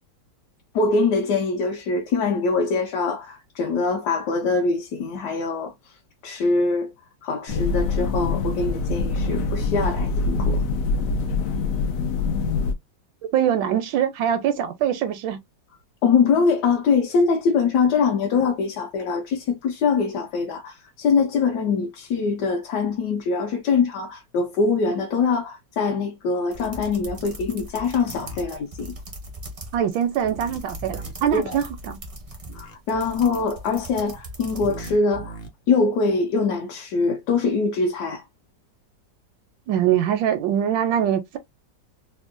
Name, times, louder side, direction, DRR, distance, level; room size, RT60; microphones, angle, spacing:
voice 1, 0.7-5.7 6.2-6.9 7.2-10.6 16.0-28.9 31.3-31.6 32.5-35.4 35.7-38.2, left 4 dB, 70° left, 1.1 m, -23 dB
sound 1, 7.5-12.7, left 3 dB, 90° left, 0.7 m, -24 dB
voice 2, 13.3-15.4 29.7-32.0 39.7-41.4, right 9 dB, 85° right, 1.3 m, -23 dB
sound 2, 26.5-35.0, equal, 60° right, 0.3 m, -39 dB
sound 3, 28.0-28.4 30.2-31.1 32.4-32.7 34.5-35.5, right 2 dB, 50° left, 0.6 m, -39 dB
3.5 x 2.1 x 2.5 m
omnidirectional pair, 2.0 m